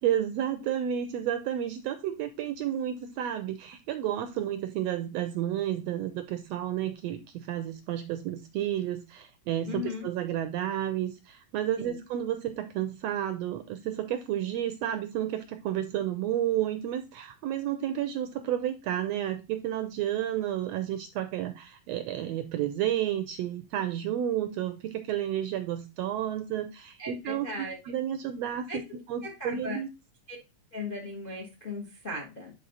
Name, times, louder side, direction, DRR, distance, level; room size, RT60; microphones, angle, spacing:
voice 1, 0.0-28.8 29.1-29.9, right 11 dB, 80° right, 9 dB, 1.6 m, -31 dB
voice 2, 9.7-10.1 11.8-12.0 27.0-27.8 28.7-29.8 30.3-30.4 30.7-32.5, left 3 dB, 45° left, 0 dB, 0.6 m, -37 dB
9.2 x 4.2 x 3.9 m, 0.27 s
omnidirectional pair, 3.4 m